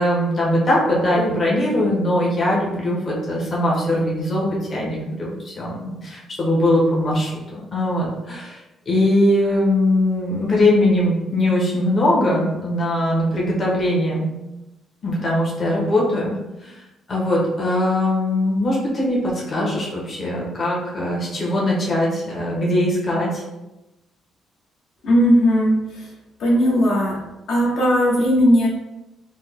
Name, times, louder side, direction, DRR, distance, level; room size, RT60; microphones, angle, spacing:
voice 1, 0.0-8.6 8.9-14.4 15.0-16.3 16.6-16.8 17.1-23.4, left 1 dB, 35° left, -4 dB, 0.9 m, -21 dB
voice 2, 25.0-26.1 26.4-27.2 27.5-28.7, equal, 65° left, -4 dB, 0.9 m, -17 dB
4.0 x 2.1 x 3.4 m, 0.99 s
cardioid pair, 130°, 0 cm